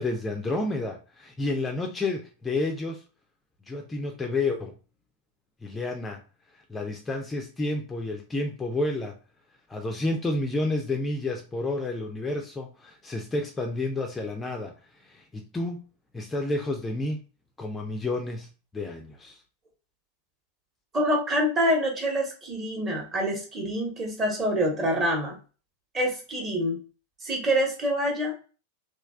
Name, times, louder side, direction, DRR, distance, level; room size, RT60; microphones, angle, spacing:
voice 1, 0.0-3.0 3.7-4.7 5.6-6.2 6.7-9.1 9.7-14.7 15.0-15.9 16.1-17.2 17.6-18.5 18.7-19.4, left 2 dB, 15° left, 3 dB, 0.4 m, -30 dB
voice 2, 20.9-25.4 25.9-26.8 27.2-28.3, equal, 25° right, 1 dB, 1.0 m, -26 dB
3.1 x 2.3 x 2.3 m, 0.35 s
figure-of-eight pair, 90°, 0 cm